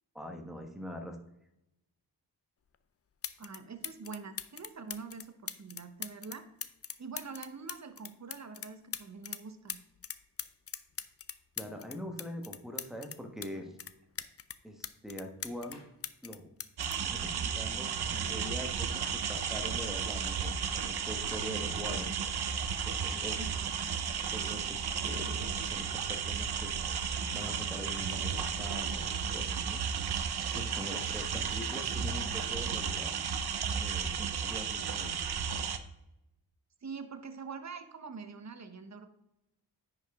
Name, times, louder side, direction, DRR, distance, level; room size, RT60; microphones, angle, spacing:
voice 1, 0.1-1.2 11.6-13.7 14.6-15.8 16.2-16.5 17.1-22.1 22.9-23.4 24.3-26.7 27.3-29.8 30.5-33.5 33.8-35.2, equal, ahead, 4 dB, 1.2 m, -43 dB
sound 1, 2.7-2.8 3.2-3.6 3.8-9.4 9.7-13.5 13.8-15.8 16.0-17.9 18.8-19.0, left 7 dB, 35° left, 0.5 m, -41 dB
voice 2, 3.4-6.4 7.0-9.8 23.4-23.7 36.8-39.1, right 5 dB, 40° right, 8 dB, 0.9 m, -45 dB
Clapping, 15.7-16.0 19.0-19.4, left 3 dB, 75° left, 1.8 m, -55 dB
sound 2, 16.8-35.8, right 7 dB, 70° right, 0.8 m, -34 dB
9.8 x 4.9 x 3.5 m, 0.88 s
wide cardioid pair, 80°, 40 cm